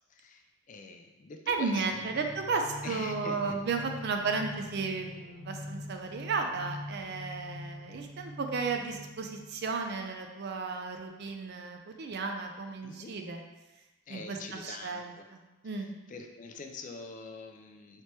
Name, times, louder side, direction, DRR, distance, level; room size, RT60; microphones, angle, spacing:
voice 1, 0.1-2.1 2.8-3.5 12.8-13.2 14.1-15.3 15.8-15.9 16.1-18.0, left 3 dB, 35° left, 4 dB, 0.3 m, -44 dB
voice 2, 1.5-13.4 14.1-15.9, right 4 dB, 50° right, 4 dB, 0.4 m, -34 dB
sound 1, 1.8-9.7, left 1 dB, 75° left, 1.2 m, -44 dB
3.2 x 2.9 x 4.4 m, 1.1 s
head